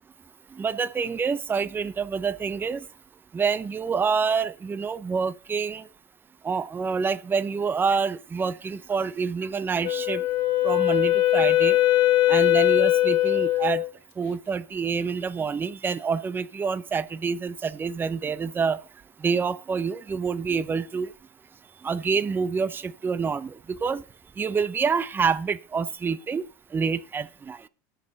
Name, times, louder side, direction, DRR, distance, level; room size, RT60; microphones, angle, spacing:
voice 1, 0.5-2.8 3.3-5.8 6.4-10.2 10.6-11.8 12.3-13.8 14.2-18.8 19.2-21.1 21.8-23.6 23.8-24.0 24.4-26.5 26.7-27.6, right 5 dB, 20° right, 0.8 m, -27 dB
Wind instrument woodwind instrument, 9.8-13.9, left 15 dB, 55° left, 1.5 m, -21 dB
19.5 x 6.7 x 4.1 m
supercardioid pair, 105°, 10 cm